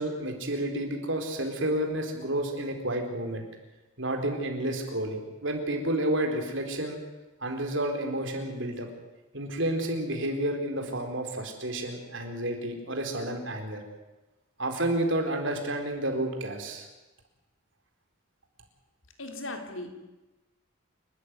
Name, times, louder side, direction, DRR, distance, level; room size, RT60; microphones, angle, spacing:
voice 1, 0.0-3.4 4.0-7.0 7.4-8.9 9.3-13.8 14.6-16.9, right 1 dB, 65° right, 4 dB, 4.2 m, -30 dB
voice 2, 19.2-19.9, left 2 dB, 75° left, 4 dB, 3.5 m, -37 dB
28.0 x 13.0 x 9.6 m, 1.1 s
head